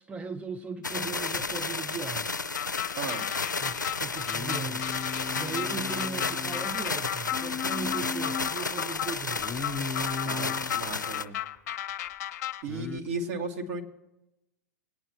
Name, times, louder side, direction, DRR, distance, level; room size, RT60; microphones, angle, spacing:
voice 1, 0.0-2.3 3.6-4.9 5.3-9.6, right 4 dB, 10° right, 0.4 m, -38 dB
sound 1, 0.8-11.2, left 4 dB, 90° left, 0.4 m, -32 dB
sound 2, 2.5-12.6, left 12 dB, 55° left, 0.8 m, -35 dB
Singing, 4.3-6.7 7.3-8.5 9.4-10.7 12.7-13.0, left 4 dB, 10° left, 0.9 m, -36 dB
voice 2, 10.2-11.4 12.6-13.8, right 3 dB, 50° right, 1.7 m, -35 dB
21.0 x 9.0 x 3.0 m
figure-of-eight pair, 95°, 10 cm